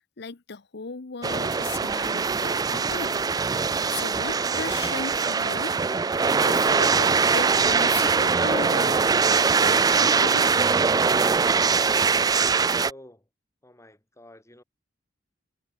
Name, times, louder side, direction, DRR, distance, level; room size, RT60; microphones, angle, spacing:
voice 1, 0.2-3.3 3.7-5.8 6.1-9.1 9.3-10.5, left 4 dB, 60° left, 0.9 m, -37 dB
sound 1, 1.2-12.9, right 5 dB, 20° right, 0.3 m, -22 dB
voice 2, 12.9-13.3 13.6-14.6, left 1 dB, 15° left, 7.4 m, -49 dB
head